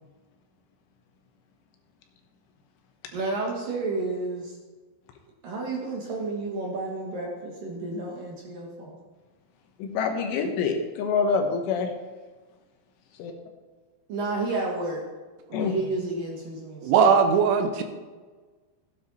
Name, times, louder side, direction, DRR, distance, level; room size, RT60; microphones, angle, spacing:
voice 1, 3.1-4.6 5.4-9.0 14.1-15.0 15.5-17.1, right 2 dB, 60° right, -2 dB, 2.5 m, -31 dB
voice 2, 9.8-11.9 13.2-13.3 15.5-15.8, left 5 dB, 75° left, 4 dB, 3.5 m, -26 dB
voice 3, 16.8-17.8, right 6 dB, 80° right, 7 dB, 3.1 m, -19 dB
15.0 x 9.8 x 4.2 m, 1.4 s
omnidirectional pair, 5.8 m